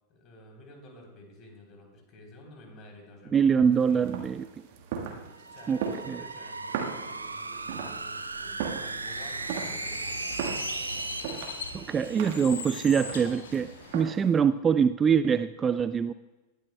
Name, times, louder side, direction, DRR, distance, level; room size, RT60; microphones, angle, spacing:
voice 1, 0.1-4.0 5.5-10.5, left 1 dB, 35° left, 2 dB, 3.4 m, -51 dB
voice 2, 3.3-4.5 5.7-5.8 6.1-6.2 11.7-16.1, right 7 dB, 20° right, 14 dB, 0.3 m, -24 dB
sound 1, 3.7-14.4, right 7 dB, 50° right, 1.5 m, -39 dB
sound 2, 5.2-12.7, right 3 dB, 80° right, 0.5 m, -37 dB
Bird, 9.0-14.0, left 5 dB, 65° left, 1.7 m, -41 dB
20.5 x 12.5 x 2.2 m, 1.1 s
figure-of-eight pair, 90°, 0 cm